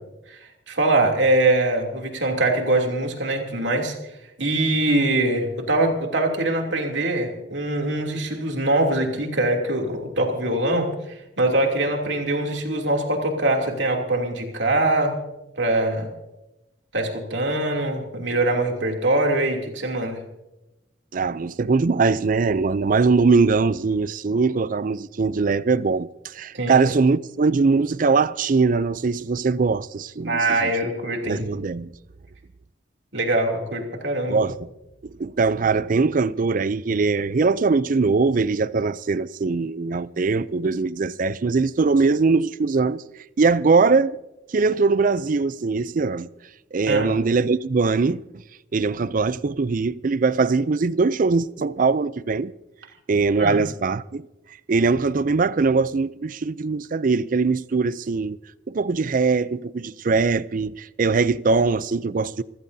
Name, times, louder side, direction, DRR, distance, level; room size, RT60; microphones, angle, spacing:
voice 1, 0.3-3.9 4.4-15.1 15.6-16.1 16.9-20.2 26.5-26.8 30.2-31.4 33.1-34.4 46.9-47.1 53.4-53.6, right 2 dB, 80° right, 2.9 m, -23 dB
voice 2, 21.1-30.7 31.3-31.9 34.3-34.5 35.2-43.0 43.4-44.2 44.5-46.3 46.7-48.2 48.7-52.5 53.1-54.3 54.7-58.4 58.7-62.4, right 4 dB, 45° right, 0.4 m, -21 dB
26.5 x 15.5 x 2.7 m
head